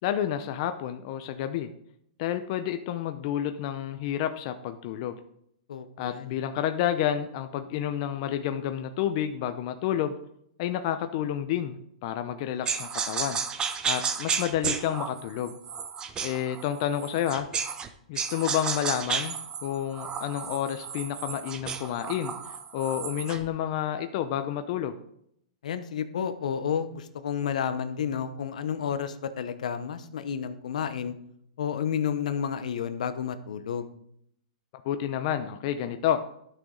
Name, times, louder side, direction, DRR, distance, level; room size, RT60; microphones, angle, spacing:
voice 1, 0.0-1.7 2.2-5.1 6.0-10.2 10.6-13.4 13.8-15.6 16.2-17.5 18.1-19.3 19.6-22.3 22.7-25.0 34.8-36.2, left 10 dB, 50° left, 8 dB, 0.7 m, -30 dB
voice 2, 5.7-6.4 25.6-31.1 31.6-33.9, left 8 dB, 75° left, 11 dB, 0.9 m, -31 dB
sound 1, 12.7-17.9 18.2-23.5, right 6 dB, 20° right, 0.7 m, -33 dB
12.0 x 6.4 x 3.9 m, 0.72 s
hypercardioid pair, 140°, 4 cm